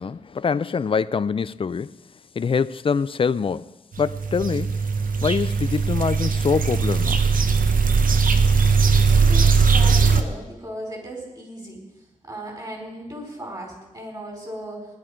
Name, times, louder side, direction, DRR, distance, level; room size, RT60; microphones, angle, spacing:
voice 1, 0.0-1.9 2.4-3.7 4.0-4.8 5.2-7.2, left 5 dB, 40° left, 0.4 m, -24 dB
sound 1, 3.9-10.2, right 5 dB, 75° right, 0.8 m, -19 dB
voice 2, 9.1-9.4 9.7-11.8 12.2-15.0, right 1 dB, 30° right, 4.5 m, -36 dB
18.0 x 11.0 x 5.0 m
wide cardioid pair, 125°, 14 cm